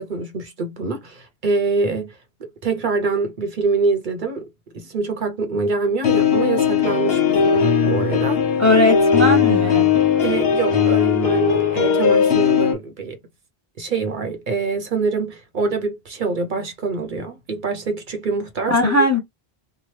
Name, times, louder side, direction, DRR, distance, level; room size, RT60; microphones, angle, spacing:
voice 1, 0.0-4.5 4.7-8.4 10.2-13.2 13.8-19.0, right 4 dB, 55° right, 0.8 m, -25 dB
sound 1, 6.0-12.7, left 7 dB, 75° left, 1.1 m, -18 dB
voice 2, 8.6-9.9 18.7-19.2, left 1 dB, 20° left, 0.7 m, -18 dB
2.9 x 2.1 x 3.1 m
omnidirectional pair, 1.0 m